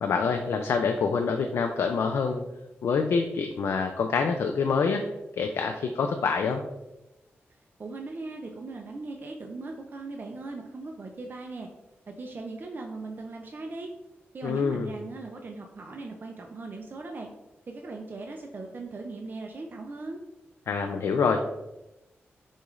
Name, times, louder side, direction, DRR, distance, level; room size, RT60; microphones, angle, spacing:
voice 1, 0.0-2.4 2.8-5.0 5.4-6.6 14.4-14.9 20.7-21.4, left 5 dB, 80° left, 5 dB, 0.3 m, -26 dB
voice 2, 7.8-11.7 12.1-13.9 14.3-17.3 17.7-20.2, right 3 dB, 45° right, 2 dB, 0.5 m, -39 dB
6.3 x 2.4 x 3.1 m, 0.94 s
cardioid pair, 75°, 5 cm